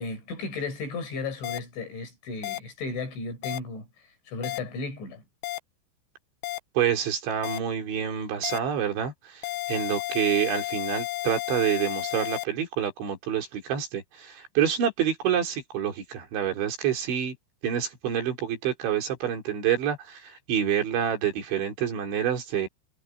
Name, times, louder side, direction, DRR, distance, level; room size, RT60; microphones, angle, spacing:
voice 1, 0.0-3.9 4.3-5.2, left 3 dB, 65° left, 8.4 m, -34 dB
sound 1, 1.4-1.6 2.4-2.6 3.4-3.6 4.4-4.6 5.4-5.6 6.4-6.6 7.4-7.6 8.4-8.6 9.4-12.4, left 18 dB, 85° left, 2.4 m, -32 dB
voice 2, 6.8-17.3 17.6-22.7, right 9 dB, 65° right, 5.9 m, -27 dB
omnidirectional pair, 5.7 m